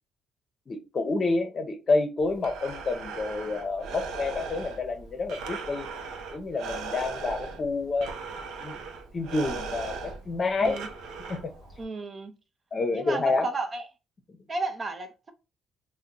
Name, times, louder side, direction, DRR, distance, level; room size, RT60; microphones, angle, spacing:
voice 1, 0.7-5.9 6.3-8.1 8.6-8.8 9.1-10.8 11.3-11.5 12.7-13.5, left 3 dB, 40° left, 0.7 m, -28 dB
Breathing, 2.2-11.8, right 4 dB, 90° right, 0.6 m, -38 dB
voice 2, 11.8-12.3 12.9-13.9 14.5-15.3, right 3 dB, 35° right, 0.6 m, -33 dB
2.7 x 2.1 x 3.6 m
cardioid pair, 90°, 0 cm